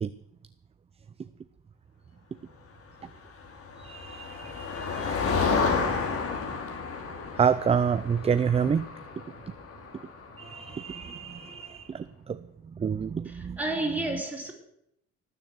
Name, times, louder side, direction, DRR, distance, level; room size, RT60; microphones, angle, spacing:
Motor vehicle (road), 3.4-11.2, left 5 dB, 50° left, 3.0 m, -31 dB
voice 1, 3.9-5.1 7.4-8.8 10.4-11.9 12.8-13.6, right 7 dB, 20° right, 0.5 m, -27 dB
voice 2, 13.2-14.5, right 2 dB, 5° right, 4.0 m, -31 dB
18.5 x 7.0 x 8.0 m
cardioid pair, 120°, 30 cm